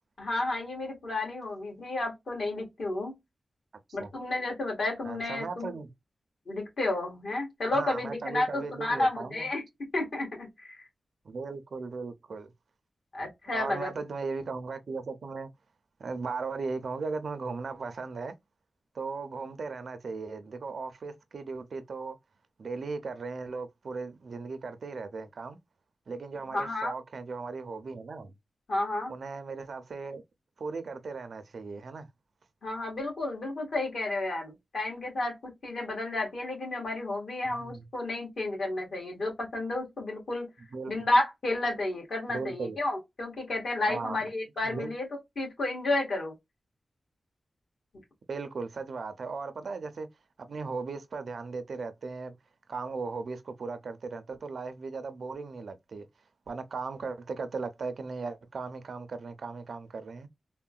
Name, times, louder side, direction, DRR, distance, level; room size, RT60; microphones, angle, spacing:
voice 1, 0.2-3.1 3.9-5.7 6.5-10.8 13.1-13.9 26.5-26.9 28.7-29.1 32.6-40.5 40.9-45.1 45.4-46.3, left 2 dB, 60° left, 1.5 m, -31 dB
voice 2, 5.0-5.9 7.7-9.5 11.2-12.5 13.5-15.5 16.0-18.3 18.9-22.2 22.6-25.6 26.1-28.3 29.1-30.2 30.6-32.1 37.4-37.9 40.7-40.9 42.3-42.8 43.9-44.2 44.6-44.9 48.3-50.1 50.4-52.4 52.7-56.1 56.5-60.3, right 4 dB, 65° right, 0.4 m, -37 dB
3.6 x 2.1 x 2.3 m
wide cardioid pair, 165°, 0 cm